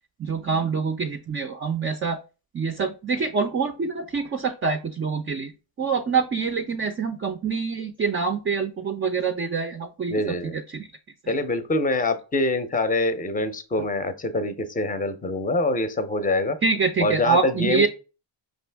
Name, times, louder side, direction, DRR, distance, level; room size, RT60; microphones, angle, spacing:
voice 1, 0.2-2.2 2.5-5.5 5.8-10.2 10.5-10.9 11.2-11.4 16.6-17.9, right 5 dB, 30° right, 6 dB, 0.4 m, -25 dB
voice 2, 10.1-10.5 11.3-16.6 17.0-17.9, left 2 dB, 15° left, 10 dB, 0.6 m, -25 dB
5.2 x 2.5 x 3.4 m, 0.33 s
cardioid pair, 70°, 50 cm